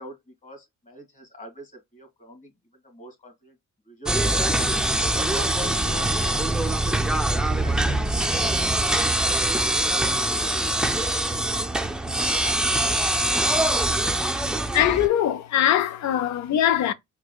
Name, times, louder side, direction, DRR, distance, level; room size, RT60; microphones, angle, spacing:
voice 1, 0.0-2.5 2.8-3.6 3.8-4.2 4.8-8.5, right 1 dB, 25° left, 2.2 m, -44 dB
sound 1, 4.1-15.1, right 1 dB, 5° right, 0.4 m, -23 dB
voice 2, 14.7-16.9, left 11 dB, 70° left, 0.6 m, -21 dB
4.7 x 2.2 x 2.3 m
cardioid pair, 90°, 30 cm